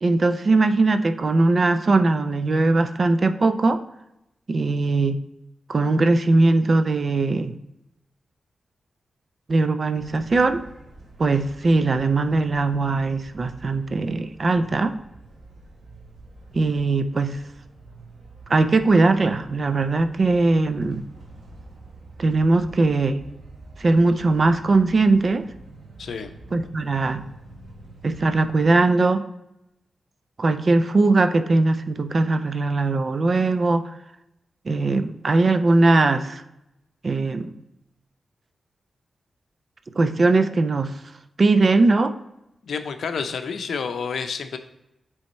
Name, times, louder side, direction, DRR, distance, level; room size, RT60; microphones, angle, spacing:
voice 1, 0.0-3.8 4.5-5.2 5.7-7.6 9.5-10.6 11.2-15.0 16.5-17.4 18.5-21.0 22.2-23.2 23.8-25.5 26.5-27.3 28.0-29.3 30.4-33.8 34.7-36.4 37.0-37.5 39.9-40.9 41.4-42.1, right 3 dB, 45° right, 10 dB, 0.4 m, -20 dB
sound 1, 10.0-28.9, right 2 dB, 85° right, 1.2 m, -46 dB
voice 2, 26.0-26.4 42.6-44.6, left 6 dB, 85° left, 8 dB, 0.5 m, -29 dB
8.2 x 3.5 x 4.1 m, 0.87 s
wide cardioid pair, 110°, 0 cm